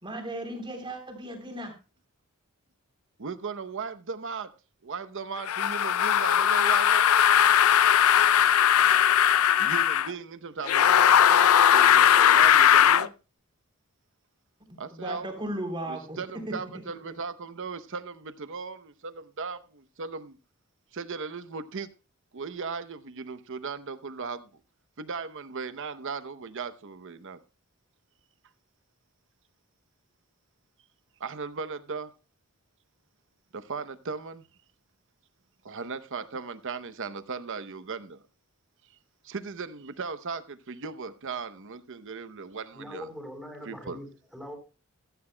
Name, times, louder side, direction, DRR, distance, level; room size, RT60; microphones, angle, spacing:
voice 1, 0.0-1.7 14.9-16.2 16.5-16.7, right 1 dB, 25° right, 3.3 m, -36 dB
voice 2, 3.2-4.5 4.8-7.1 9.6-13.1 14.8-15.3 15.9-20.4 20.9-21.9 22.3-24.5 25.0-27.4 31.2-32.1 33.5-34.4 35.6-38.2 39.2-43.1 43.7-44.0, right 5 dB, 60° right, 0.8 m, -37 dB
sound 1, 5.5-10.1 10.6-13.1, left 9 dB, 75° left, 0.4 m, -19 dB
voice 3, 42.7-44.6, equal, ahead, 4.0 m, -42 dB
15.0 x 13.5 x 2.2 m
head